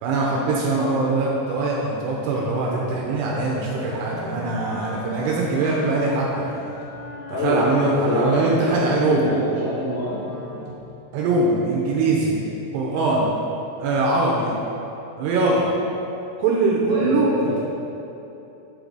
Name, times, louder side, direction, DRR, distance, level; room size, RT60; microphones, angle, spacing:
voice 1, 0.0-6.6 7.4-9.3 11.1-12.4 12.7-13.3 13.8-14.5 15.2-15.7 16.4-17.6, right 3 dB, 85° right, -3 dB, 2.5 m, -22 dB
Wind instrument woodwind instrument, 3.4-10.8, left 2 dB, 60° left, 1.4 m, -39 dB
sound 1, 4.9-12.5, left 1 dB, 60° right, 2.3 m, -45 dB
voice 2, 7.3-10.2 10.5-10.6 16.9-17.6, left 1 dB, 85° left, -8 dB, 1.8 m, -25 dB
8.5 x 3.9 x 4.7 m, 2.9 s
omnidirectional pair, 5.2 m